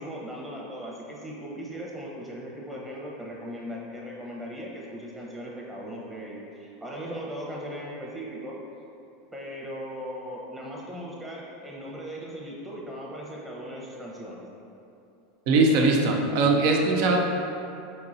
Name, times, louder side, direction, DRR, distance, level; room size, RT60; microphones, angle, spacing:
voice 1, 0.0-8.5 9.3-14.4, equal, 15° right, -4 dB, 0.9 m, -38 dB
voice 2, 15.5-17.2, right 3 dB, 65° right, 1 dB, 0.5 m, -21 dB
5.3 x 2.8 x 2.6 m, 2.7 s
hypercardioid pair, 95°, 0 cm